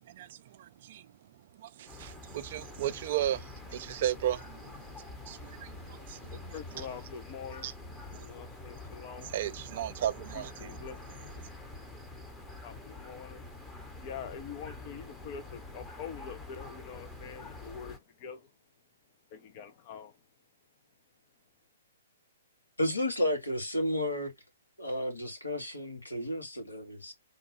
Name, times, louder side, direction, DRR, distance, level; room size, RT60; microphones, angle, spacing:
voice 1, 0.1-1.1 1.6-4.7 5.2-6.5 7.6-7.7 8.1-8.3 9.2-10.8, right 12 dB, 40° right, 0.4 m, -35 dB
sound 1, 1.9-18.0, left 2 dB, 10° left, 0.8 m, -46 dB
voice 2, 6.3-7.7 8.1-9.3 10.3-11.2 12.6-13.4 14.0-18.5 19.3-20.2, left 7 dB, 35° left, 0.5 m, -45 dB
voice 3, 22.8-24.3 24.8-27.1, left 1 dB, 80° left, 1.4 m, -32 dB
3.6 x 2.2 x 3.0 m
figure-of-eight pair, 120°, 0 cm